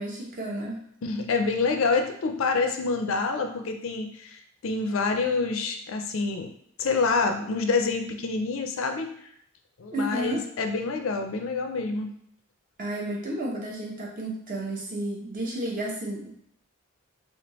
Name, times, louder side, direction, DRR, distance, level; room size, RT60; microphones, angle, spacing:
voice 1, 0.0-0.8 9.9-10.4 12.8-16.5, right 1 dB, 40° right, -3 dB, 0.8 m, -32 dB
voice 2, 1.0-6.5 6.8-9.1 9.8-12.1, left 4 dB, 70° left, 5 dB, 0.4 m, -27 dB
3.3 x 2.7 x 3.0 m, 0.66 s
head